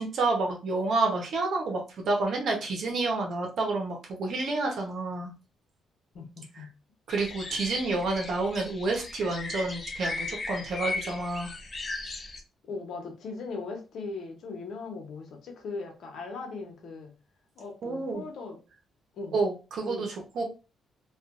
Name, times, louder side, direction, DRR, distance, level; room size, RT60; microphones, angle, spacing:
voice 1, 0.0-5.3 7.1-11.5 17.8-18.3 19.3-20.4, right 3 dB, 65° right, 1 dB, 1.0 m, -29 dB
voice 2, 6.1-6.7 12.6-17.1 17.6-18.6 19.1-19.3 19.8-20.1, left 3 dB, 70° left, 2 dB, 0.8 m, -39 dB
sound 1, 7.1-12.4, left 3 dB, 35° left, 0.5 m, -37 dB
2.6 x 2.5 x 2.5 m, 0.32 s
cardioid pair, 90°, 0 cm